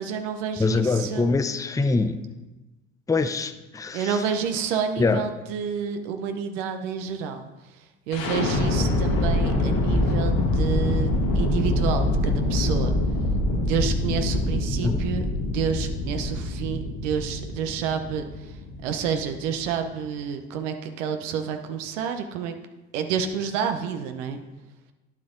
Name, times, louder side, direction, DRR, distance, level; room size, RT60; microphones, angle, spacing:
voice 1, 0.0-1.3 3.9-12.9 13.6-22.5 22.9-24.4, right 7 dB, 80° right, 6 dB, 0.8 m, -29 dB
voice 2, 0.6-2.2 3.1-4.1 5.0-5.2 14.8-15.0, left 3 dB, 10° left, 10 dB, 0.6 m, -23 dB
sound 1, 8.1-20.0, left 1 dB, 70° left, 2.4 m, -25 dB
9.6 x 7.5 x 3.8 m, 1.1 s
hypercardioid pair, 60°, 37 cm